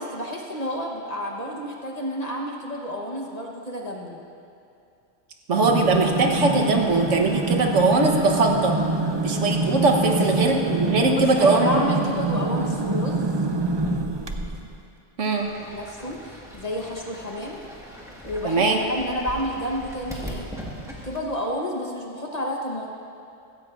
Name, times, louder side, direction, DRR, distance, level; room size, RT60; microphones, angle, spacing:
voice 1, 0.0-4.2 10.1-10.2 11.2-13.3 15.7-17.6 18.2-20.5 21.0-22.9, equal, 35° left, -1 dB, 1.1 m, -30 dB
sound 1, 5.5-14.7, right 3 dB, 30° right, 0.5 m, -25 dB
voice 2, 5.5-8.7 9.2-11.9 15.2-15.5 18.4-18.8, right 3 dB, 75° right, 2 dB, 1.4 m, -21 dB
Fowl / Bird, 15.3-21.2, equal, 5° right, 1.5 m, -40 dB
16.0 x 15.0 x 2.5 m, 2.6 s
omnidirectional pair, 1.3 m